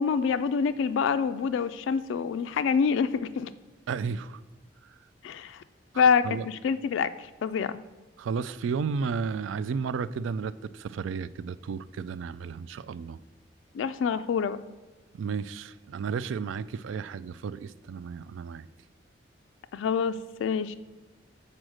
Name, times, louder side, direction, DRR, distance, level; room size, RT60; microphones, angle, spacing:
voice 1, 0.0-3.5 5.2-5.6 6.0-7.8 13.7-14.6 19.7-20.8, left 6 dB, 85° left, 11 dB, 0.3 m, -26 dB
voice 2, 3.9-4.4 6.2-6.5 8.2-13.2 15.1-18.7, right 5 dB, 85° right, 16 dB, 0.3 m, -33 dB
6.2 x 4.3 x 6.3 m, 1.3 s
head